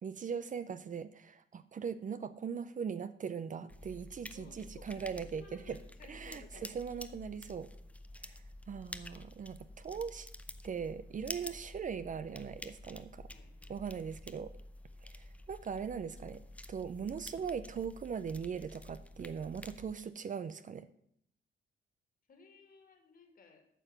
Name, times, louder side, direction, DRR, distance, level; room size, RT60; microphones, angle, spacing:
voice 1, 0.0-5.8 6.1-7.7 8.2-10.3 10.6-13.3 13.7-14.5 15.0-16.4 16.7-20.9, right 6 dB, 40° right, 12 dB, 0.6 m, -40 dB
sound 1, 3.7-20.0, left 1 dB, 5° left, 0.7 m, -50 dB
voice 2, 4.3-6.7 13.3-13.8 22.3-23.7, left 4 dB, 45° left, 5 dB, 2.6 m, -58 dB
9.2 x 5.9 x 8.0 m, 0.70 s
cardioid pair, 90°, 20 cm